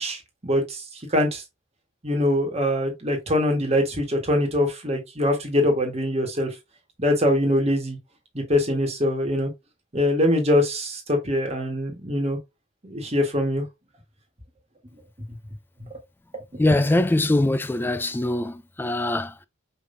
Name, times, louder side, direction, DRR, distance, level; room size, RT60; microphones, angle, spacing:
voice 1, 0.0-1.4 2.0-6.5 7.0-8.0 8.3-9.5 9.9-12.4 12.8-13.7 15.8-16.0 16.5-16.6, left 1 dB, 30° right, 1.5 m, -23 dB
voice 2, 16.6-19.3, left 1 dB, 10° left, 0.3 m, -22 dB
4.9 x 3.5 x 2.6 m
head